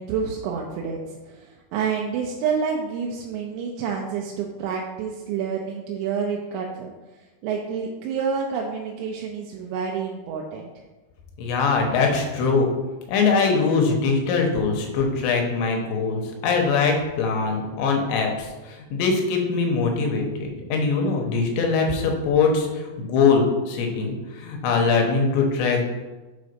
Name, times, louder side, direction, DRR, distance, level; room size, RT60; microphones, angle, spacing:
voice 1, 0.0-10.7, right 6 dB, 90° right, 0 dB, 2.9 m, -29 dB
voice 2, 11.4-12.7 13.1-25.9, left 4 dB, 85° left, 2 dB, 3.2 m, -22 dB
7.3 x 3.9 x 5.1 m, 1.2 s
omnidirectional pair, 5.0 m